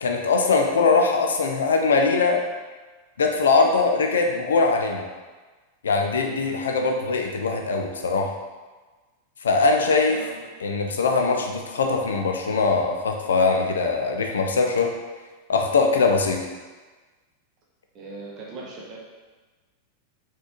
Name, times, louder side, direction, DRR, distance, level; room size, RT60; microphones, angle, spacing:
voice 1, 0.0-2.4 3.2-5.1 5.8-8.3 9.4-10.2 10.6-14.9 15.5-16.4, left 4 dB, 70° left, 3 dB, 0.4 m, -21 dB
voice 2, 10.1-10.5 17.9-19.0, right 3 dB, 35° right, -4 dB, 1.0 m, -39 dB
4.0 x 2.4 x 2.9 m, 1.3 s
figure-of-eight pair, 90°, 0 cm